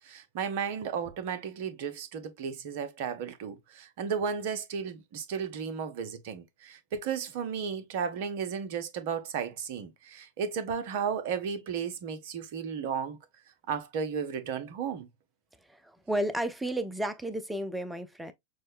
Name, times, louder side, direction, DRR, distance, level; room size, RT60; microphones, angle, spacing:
voice 1, 0.1-13.2 13.7-15.1, right 7 dB, 50° right, 0.7 m, -34 dB
voice 2, 15.7-18.3, right 1 dB, 5° right, 0.6 m, -32 dB
6.3 x 2.1 x 2.5 m
figure-of-eight pair, 90°, 0 cm